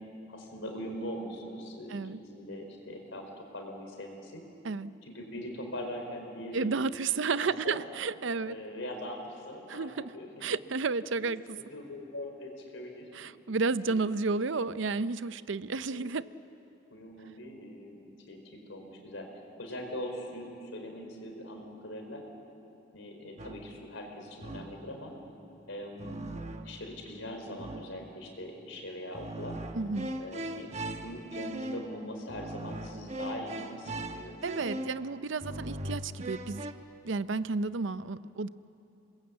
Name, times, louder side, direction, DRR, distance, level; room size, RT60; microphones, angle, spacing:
voice 1, 0.3-4.4 5.0-6.7 7.3-7.8 8.4-10.3 11.2-13.1 13.8-14.0 15.9-16.1 16.9-19.3 19.6-22.2 22.9-25.1 25.7-26.2 26.6-29.6 30.2-35.0, equal, 75° left, 3 dB, 4.5 m, -42 dB
voice 2, 1.9-2.2 4.6-4.9 6.5-8.5 9.7-10.1 10.4-11.6 13.1-16.3 29.8-30.1 34.4-36.6 37.0-38.5, right 4 dB, 70° right, 15 dB, 0.6 m, -32 dB
sound 1, 23.4-23.9 24.4-24.9 26.0-27.0 27.6-28.1 29.1-36.7, right 1 dB, 35° right, 1.1 m, -40 dB
28.0 x 21.0 x 8.3 m, 2.9 s
head